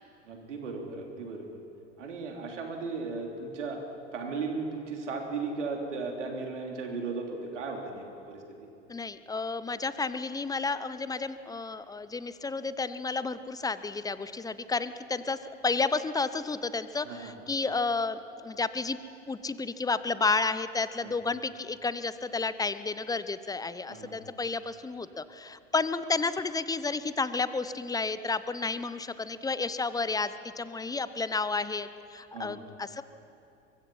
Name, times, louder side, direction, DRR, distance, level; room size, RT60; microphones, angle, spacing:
voice 1, 0.3-1.6 2.0-3.8 4.1-8.4 17.0-17.3 21.0-21.1 23.9-24.1 32.3-32.6, right 4 dB, 75° right, 2 dB, 3.5 m, -36 dB
voice 2, 8.9-19.0 19.3-33.0, left 4 dB, 10° left, 14 dB, 0.8 m, -31 dB
24.0 x 23.0 x 5.7 m, 2.6 s
figure-of-eight pair, 80°, 37 cm